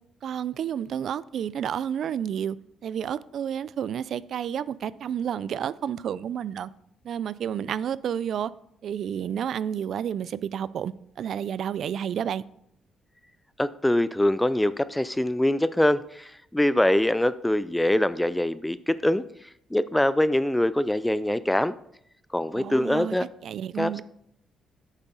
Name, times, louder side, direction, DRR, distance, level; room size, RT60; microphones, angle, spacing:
voice 1, 0.2-2.6 2.8-6.7 7.0-8.5 8.8-12.4 22.5-23.2 23.4-24.0, right 9 dB, 65° right, 0.3 m, -30 dB
voice 2, 13.6-19.2 19.7-21.7 22.3-23.3 23.8-24.0, left 1 dB, 5° left, 0.3 m, -23 dB
9.0 x 7.3 x 4.0 m
cardioid pair, 90°, 0 cm